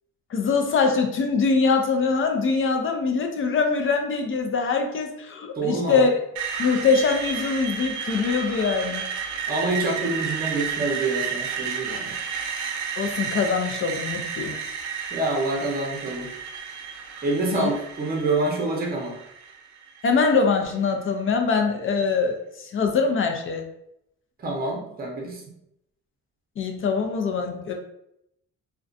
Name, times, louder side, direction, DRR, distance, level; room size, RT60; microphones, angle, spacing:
voice 1, 0.3-6.1 6.6-9.1 13.0-14.6 17.5-17.7 20.0-23.6 26.6-27.7, left 5 dB, 45° left, 3 dB, 0.4 m, -23 dB
voice 2, 5.5-6.1 9.5-12.2 15.1-16.3 17.2-19.2 24.4-25.4, right 2 dB, 30° right, 0 dB, 0.7 m, -26 dB
Screech, 6.4-20.3, right 6 dB, 70° right, 0.5 m, -32 dB
2.4 x 2.2 x 2.5 m, 0.79 s
cardioid pair, 90°, 30 cm